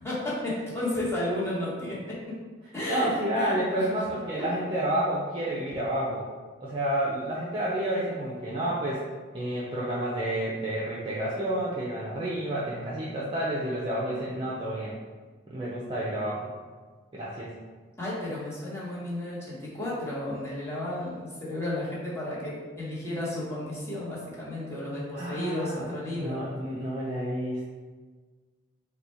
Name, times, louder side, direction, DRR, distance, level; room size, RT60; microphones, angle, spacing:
voice 1, 0.0-2.4 2.7-3.9 4.4-4.5 18.0-26.4, left 1 dB, 15° left, -8 dB, 1.0 m, -33 dB
voice 2, 2.9-6.2 6.6-9.0 9.3-15.0 15.5-16.5 17.1-17.5 25.1-27.7, right 1 dB, 25° right, -6 dB, 0.5 m, -30 dB
4.0 x 2.2 x 4.3 m, 1.4 s
head